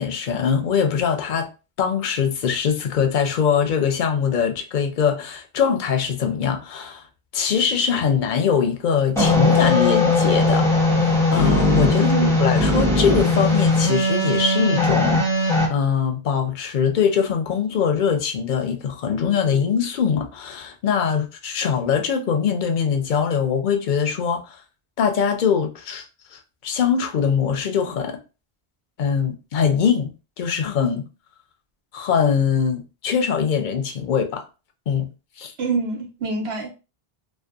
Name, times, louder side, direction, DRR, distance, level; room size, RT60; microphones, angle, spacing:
voice 1, 0.0-1.5 1.8-7.0 7.3-10.7 11.0-12.1 12.4-24.6 25.0-26.0 26.3-28.2 29.0-31.0 31.9-34.4 34.9-35.1 35.4-35.5, left 7 dB, 60° left, 0.6 m, -22 dB
sound 1, 9.2-15.7, left 2 dB, 5° left, 0.5 m, -19 dB
voice 2, 12.0-12.4 35.6-36.7, right 4 dB, 85° right, 1.1 m, -25 dB
2.7 x 2.1 x 2.3 m
omnidirectional pair, 1.0 m